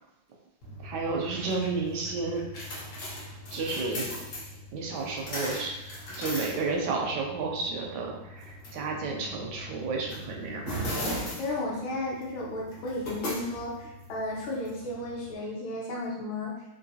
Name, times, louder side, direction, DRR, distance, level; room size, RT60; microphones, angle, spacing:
sound 1, 0.6-15.3, left 1 dB, 55° left, 1.2 m, -39 dB
voice 1, 0.8-2.4 3.5-4.1 4.7-5.7 6.2-10.7, right 3 dB, 75° right, 0 dB, 1.1 m, -31 dB
voice 2, 11.4-16.5, left 1 dB, 85° left, -3 dB, 1.6 m, -34 dB
3.8 x 2.6 x 2.7 m, 0.94 s
omnidirectional pair, 2.1 m